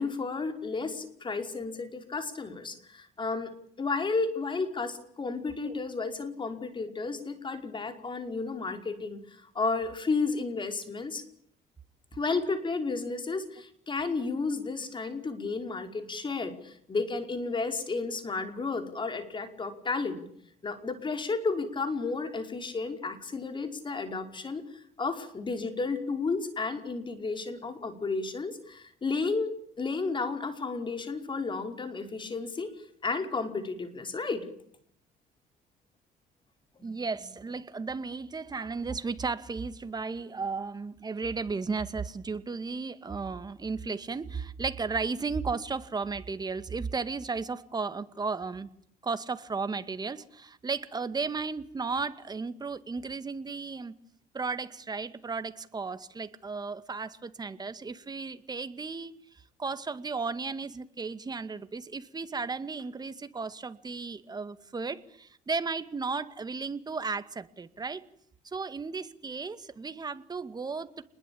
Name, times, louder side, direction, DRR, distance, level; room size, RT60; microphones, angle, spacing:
voice 1, 0.0-3.5 3.8-11.2 12.1-20.2 20.6-32.7 33.0-34.5 36.8-36.9, left 4 dB, 30° left, 5.2 m, -32 dB
voice 2, 36.8-48.7 49.0-53.9 54.3-68.0 68.4-71.0, right 4 dB, 25° right, 2.1 m, -34 dB
29.5 x 21.5 x 8.8 m
cardioid pair, 110°, 17 cm